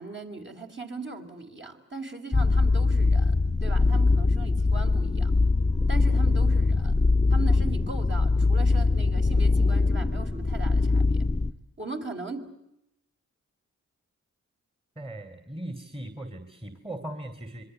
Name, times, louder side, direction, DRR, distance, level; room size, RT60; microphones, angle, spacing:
voice 1, 0.0-5.3 5.9-7.0 7.3-11.2 11.8-12.5, right 3 dB, 35° right, 2 dB, 4.3 m, -39 dB
sound 1, 2.3-11.5, left 3 dB, 20° left, 1.2 m, -22 dB
voice 2, 15.0-17.6, right 1 dB, 15° right, 7 dB, 2.9 m, -38 dB
26.5 x 22.5 x 7.8 m, 0.82 s
cardioid pair, 65°, 32 cm